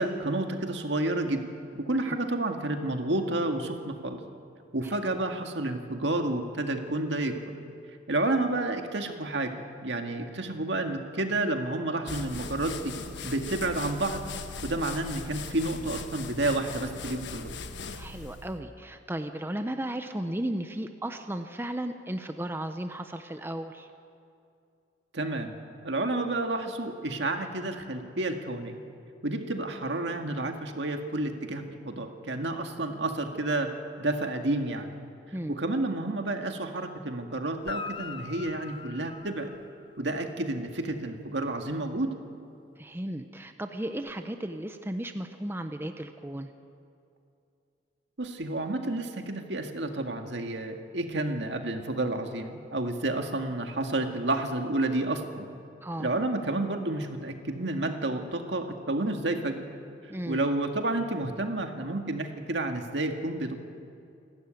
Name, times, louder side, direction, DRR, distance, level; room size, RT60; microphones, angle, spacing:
voice 1, 0.0-1.4 1.7-4.2 4.7-7.4 8.1-9.5 9.8-12.9 13.2-14.2 14.6-17.5 25.1-25.6 25.8-28.8 29.2-33.7 34.0-34.9 35.5-39.5 40.0-42.1 48.2-55.5 56.0-59.7 60.3-63.5, right 2 dB, 75° right, 4 dB, 1.9 m, -30 dB
sound 1, 12.1-18.6, left 4 dB, 70° left, 1.2 m, -39 dB
voice 2, 17.9-23.9 35.3-35.6 42.8-46.5 55.8-56.1 60.1-60.4, right 1 dB, 15° right, 7 dB, 0.8 m, -35 dB
Guitar, 37.6-40.2 44.0-44.1, left 5 dB, 30° left, 0.7 m, -41 dB
27.5 x 13.0 x 9.1 m, 2.5 s
head